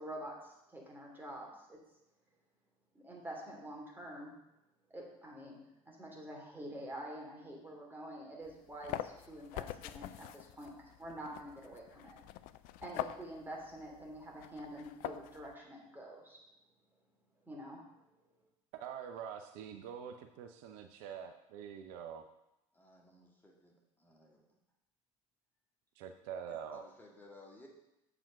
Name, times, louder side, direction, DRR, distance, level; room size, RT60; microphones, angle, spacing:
voice 1, 0.0-1.8 2.9-4.3 4.9-5.6 5.9-12.2 12.8-16.4 17.5-17.8, right 1 dB, 10° right, -2 dB, 2.9 m, -47 dB
sound 1, 8.5-15.5, left 13 dB, 55° left, 0.4 m, -45 dB
voice 2, 18.7-22.2 26.0-26.8, right 8 dB, 60° right, 6 dB, 0.7 m, -45 dB
voice 3, 22.7-24.4 26.5-27.7, left 2 dB, 10° left, -1 dB, 1.9 m, -58 dB
7.3 x 5.0 x 6.4 m, 0.88 s
hypercardioid pair, 70°, 18 cm